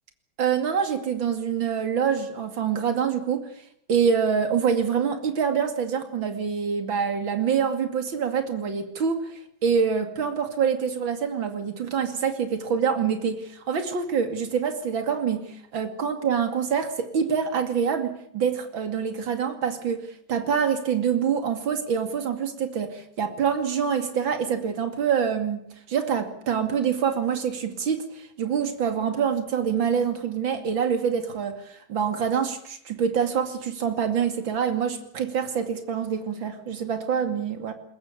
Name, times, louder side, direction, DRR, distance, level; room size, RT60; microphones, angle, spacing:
voice 1, 0.4-3.4 3.9-9.3 9.6-15.5 15.7-20.0 20.3-25.6 25.9-37.7, right 7 dB, 75° right, 8 dB, 3.2 m, -25 dB
22.0 x 20.5 x 8.4 m, 0.65 s
omnidirectional pair, 2.1 m